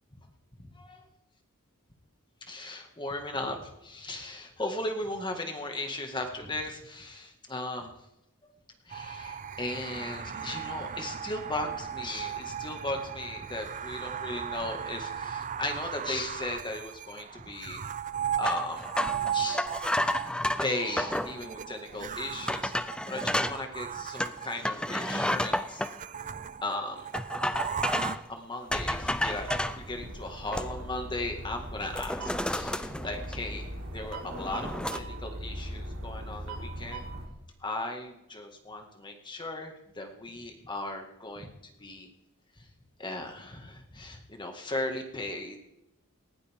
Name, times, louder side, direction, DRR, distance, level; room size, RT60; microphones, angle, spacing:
voice 1, 2.4-7.9 8.4-8.5 8.9-17.8 18.4-18.9 19.3-20.3 20.6-25.9 26.6-27.1 28.3-37.1 37.6-42.1 42.6-42.7 43.0-45.6, left 2 dB, 20° left, 4 dB, 2.1 m, -37 dB
sound 1, 8.9-28.2, right 8 dB, 35° right, 0.6 m, -37 dB
sound 2, 18.4-21.3 21.9-22.0 22.5-23.6 24.2-25.9 27.1-28.3 28.7-29.8 30.3-31.0 31.3-31.5 31.8-33.7 34.0-35.0, left 1 dB, 5° left, 0.6 m, -31 dB
sound 3, 28.7-37.3, right 1 dB, 70° right, 3.7 m, -40 dB
19.5 x 16.5 x 3.7 m, 0.88 s
head